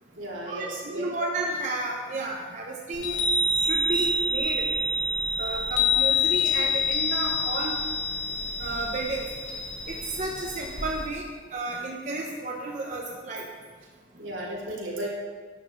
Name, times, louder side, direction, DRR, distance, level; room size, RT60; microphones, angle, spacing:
voice 1, 0.2-1.1 14.2-15.1, right 1 dB, 85° right, -5 dB, 2.8 m, -34 dB
voice 2, 1.0-3.2 3.6-4.7 5.4-7.8 8.6-9.3 9.9-11.2 11.5-13.5, right 2 dB, 40° right, -1 dB, 0.8 m, -32 dB
Chime, 2.9-11.1, left 3 dB, 65° left, 1.3 m, -27 dB
11.0 x 9.0 x 3.2 m, 1.5 s
head